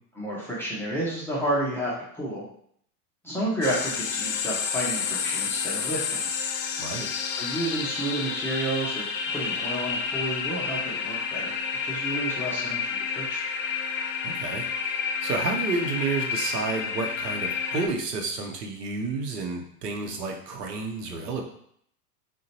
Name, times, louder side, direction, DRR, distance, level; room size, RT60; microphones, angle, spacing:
voice 1, 0.1-2.5 3.2-6.3 7.4-11.6 11.8-13.4, right 1 dB, 5° left, -7 dB, 0.4 m, -31 dB
sound 1, 3.6-17.9, left 6 dB, 55° left, 0.5 m, -30 dB
voice 2, 14.2-21.4, right 4 dB, 85° right, 2 dB, 0.8 m, -31 dB
3.7 x 2.2 x 2.8 m, 0.67 s
hypercardioid pair, 105°, 46 cm